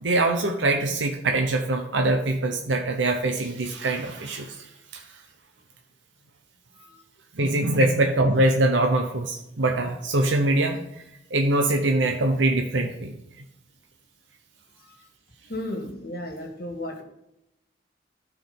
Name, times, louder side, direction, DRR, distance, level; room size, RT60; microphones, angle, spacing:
voice 1, 0.0-4.6 4.9-5.0 7.3-10.8 11.3-13.1, right 2 dB, 75° right, 3 dB, 0.9 m, -23 dB
voice 2, 15.5-17.0, left 1 dB, 55° left, 3 dB, 1.8 m, -33 dB
12.5 x 4.9 x 5.4 m, 0.85 s
head